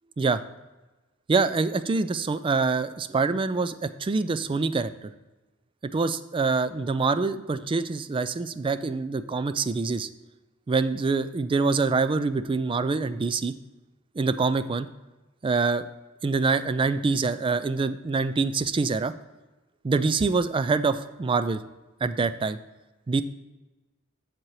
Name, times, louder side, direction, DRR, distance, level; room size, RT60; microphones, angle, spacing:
voice 1, 1.3-5.1 5.9-10.1 10.7-13.5 14.2-14.9 15.4-15.9 16.2-19.1 19.8-21.6 22.0-22.6 23.1-23.2, right 4 dB, 25° right, 13 dB, 0.3 m, -25 dB
7.5 x 7.3 x 3.2 m, 1.1 s
head